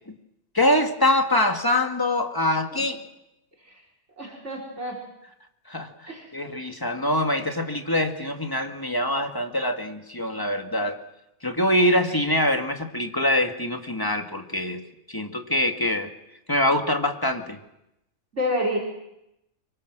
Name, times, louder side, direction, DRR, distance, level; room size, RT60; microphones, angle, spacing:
voice 1, 0.5-3.0 5.7-11.0 11.4-14.8 15.1-16.1 16.5-17.6, left 1 dB, 15° left, 4 dB, 1.9 m, -24 dB
voice 2, 4.2-5.0 6.1-6.3 18.3-18.8, equal, 55° right, 1 dB, 4.8 m, -28 dB
25.5 x 24.0 x 6.2 m, 0.86 s
omnidirectional pair, 1.5 m